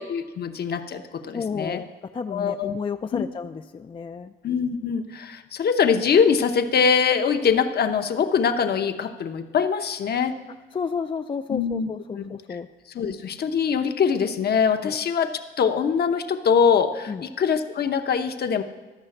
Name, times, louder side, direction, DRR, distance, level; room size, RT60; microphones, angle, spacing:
voice 1, 0.0-1.8 2.3-2.7 3.1-3.2 4.4-10.4 11.5-11.9 12.2-12.6 12.9-15.3 15.6-18.6, left 6 dB, 55° left, 7 dB, 0.8 m, -23 dB
voice 2, 1.3-4.3 10.7-12.7 14.8-14.9 17.1-17.2, left 5 dB, 25° left, 6 dB, 0.4 m, -31 dB
12.5 x 5.6 x 7.7 m, 1.2 s
cardioid pair, 90°, 20 cm